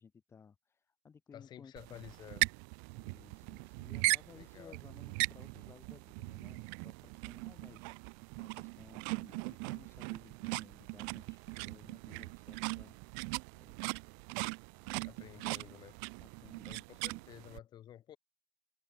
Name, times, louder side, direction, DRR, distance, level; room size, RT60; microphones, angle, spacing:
voice 1, 0.0-2.1 3.0-13.0 13.6-14.2 15.1-15.5 16.2-17.2, left 6 dB, 25° left, 3.0 m, -59 dB
voice 2, 1.3-2.5 4.3-4.7 15.0-16.0 16.7-18.2, left 11 dB, 45° left, 4.9 m, -52 dB
sound 1, 1.8-17.6, right 40 dB or more, 75° right, 0.5 m, -39 dB
supercardioid pair, 105°, 10 cm